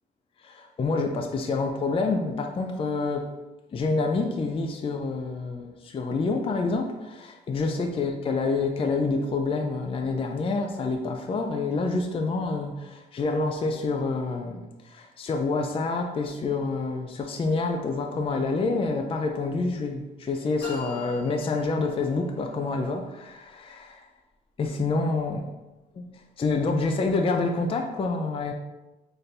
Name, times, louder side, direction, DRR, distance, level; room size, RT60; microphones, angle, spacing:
voice 1, 0.4-3.3 3.7-24.0 24.6-25.5 26.0-26.1 26.4-28.5, left 3 dB, 30° left, 4 dB, 0.4 m, -27 dB
sound 1, 20.6-22.3, left 1 dB, 65° left, 1.1 m, -41 dB
4.0 x 2.6 x 3.3 m, 1.1 s
cardioid pair, 90°, 20 cm